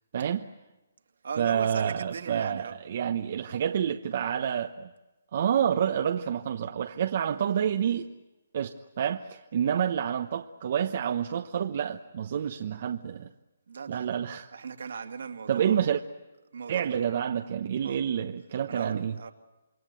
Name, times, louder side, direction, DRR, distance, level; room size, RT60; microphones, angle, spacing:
voice 1, 0.1-0.5 1.4-4.9 5.3-8.1 8.5-13.3 13.9-14.5 15.5-16.0 16.7-19.1, right 9 dB, 50° right, 1.0 m, -28 dB
voice 2, 1.2-2.8 13.7-14.2 14.5-15.9 16.5-17.0 17.8-18.1 18.7-19.3, right 5 dB, 70° right, 2.5 m, -38 dB
27.5 x 22.0 x 9.2 m
hypercardioid pair, 155°, 0 cm